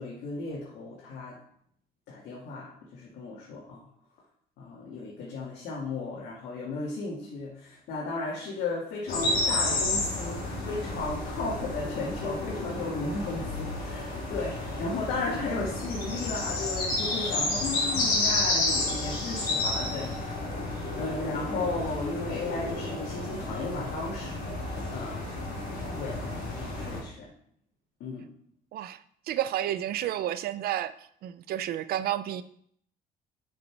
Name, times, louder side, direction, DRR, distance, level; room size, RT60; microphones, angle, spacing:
voice 1, 0.0-1.4 2.1-3.8 4.6-20.3 21.0-24.5 24.9-25.2 25.9-27.3 28.0-28.3, left 3 dB, 80° left, -5 dB, 2.1 m, -35 dB
sound 1, 9.1-27.0, left 2 dB, 60° left, 3.2 m, -31 dB
voice 2, 29.3-32.4, right 12 dB, 65° right, 14 dB, 0.5 m, -31 dB
6.5 x 5.9 x 4.6 m, 0.65 s
cardioid pair, 110°, 17 cm